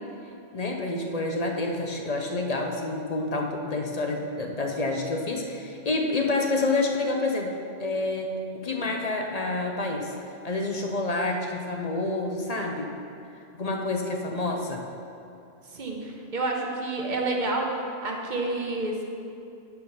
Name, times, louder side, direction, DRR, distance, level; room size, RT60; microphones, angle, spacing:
voice 1, 0.5-7.5 7.8-10.1 10.4-12.9 13.6-14.8, left 2 dB, 40° left, 2 dB, 0.7 m, -28 dB
voice 2, 15.7-19.0, right 2 dB, 40° right, 1 dB, 1.1 m, -29 dB
10.0 x 4.6 x 5.7 m, 2.6 s
omnidirectional pair, 1.2 m